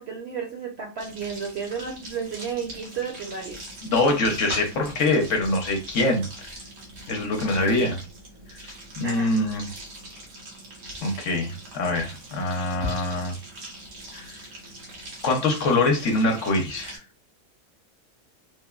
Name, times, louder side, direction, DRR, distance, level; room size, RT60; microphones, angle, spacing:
voice 1, 0.0-3.6 9.0-9.3, right 6 dB, 65° right, 1 dB, 0.7 m, -32 dB
sound 1, 1.0-17.0, right 1 dB, 90° right, 1.5 m, -41 dB
voice 2, 3.8-6.5 7.1-8.0 8.6-9.7 11.0-13.3 14.1-14.4 15.2-17.0, left 2 dB, 65° left, 2 dB, 1.0 m, -24 dB
3.2 x 2.1 x 2.3 m, 0.32 s
omnidirectional pair, 1.5 m